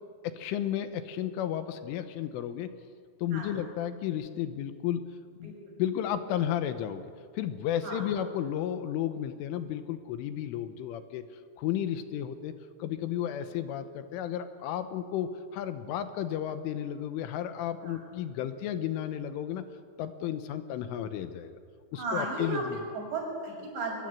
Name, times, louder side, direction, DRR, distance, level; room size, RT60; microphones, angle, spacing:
voice 1, 0.2-2.7 3.2-5.0 5.4-5.5 5.8-7.1 7.4-12.5 12.8-19.7 20.0-21.5 21.9-22.8, left 10 dB, 80° left, 10 dB, 3.5 m, -33 dB
voice 2, 7.8-8.1 17.8-18.0 21.9-24.1, right 2 dB, 60° right, 0 dB, 8.5 m, -35 dB
23.5 x 22.5 x 9.1 m, 2.1 s
omnidirectional pair, 5.8 m